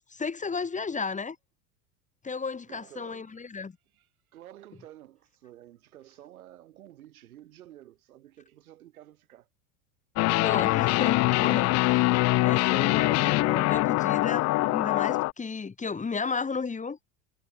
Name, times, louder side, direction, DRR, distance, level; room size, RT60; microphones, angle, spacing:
voice 1, 0.1-1.4 2.2-3.7 10.4-17.0, left 5 dB, 15° left, 3.4 m, -33 dB
voice 2, 2.7-3.4 3.9-9.5, right 13 dB, 90° right, 6.7 m, -51 dB
sound 1, 10.2-15.3, left 21 dB, 40° left, 0.5 m, -23 dB
supercardioid pair, 105°, 42 cm